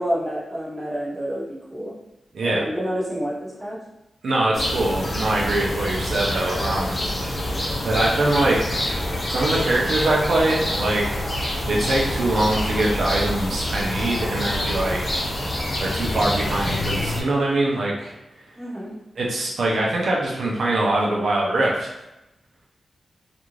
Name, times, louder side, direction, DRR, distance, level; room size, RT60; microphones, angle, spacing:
voice 1, 0.0-1.9 2.4-3.8 18.6-19.0, equal, 20° right, -8 dB, 1.0 m, -28 dB
voice 2, 2.3-2.7 4.2-7.0 7.8-8.6 9.3-15.5 15.8-18.1 19.2-21.9, right 2 dB, 75° right, -3 dB, 0.5 m, -23 dB
sound 1, 4.5-17.2, left 1 dB, 35° left, 0.6 m, -26 dB
2.4 x 2.3 x 3.0 m, 0.94 s
wide cardioid pair, 145°, 0 cm